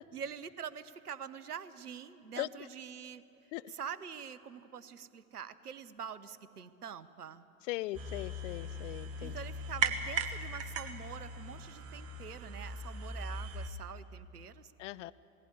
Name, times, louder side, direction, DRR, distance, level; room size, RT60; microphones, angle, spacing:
voice 1, 0.1-3.2 3.7-7.4 9.2-14.7, right 7 dB, 85° right, 16 dB, 0.8 m, -45 dB
voice 2, 7.6-9.3 14.8-15.1, left 17 dB, 55° left, 17 dB, 0.6 m, -39 dB
sound 1, 7.9-13.7, right 3 dB, 30° right, 1.4 m, -38 dB
19.5 x 16.5 x 9.7 m, 2.9 s
figure-of-eight pair, 80°, 45 cm